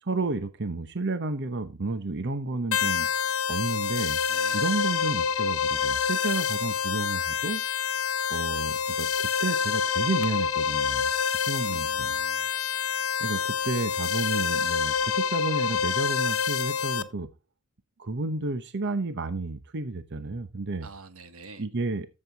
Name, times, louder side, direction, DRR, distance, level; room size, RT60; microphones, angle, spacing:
voice 1, 0.0-3.1 3.5-4.2 4.5-7.6 8.3-11.1 11.5-12.1 13.2-17.3 18.0-20.9 21.6-22.1, right 3 dB, 55° right, 0.9 m, -31 dB
sound 1, 2.7-17.0, left 7 dB, 80° left, 0.9 m, -27 dB
voice 2, 4.3-4.6 11.6-12.5 20.8-21.6, right 3 dB, 85° right, 1.3 m, -46 dB
13.0 x 7.6 x 4.0 m
head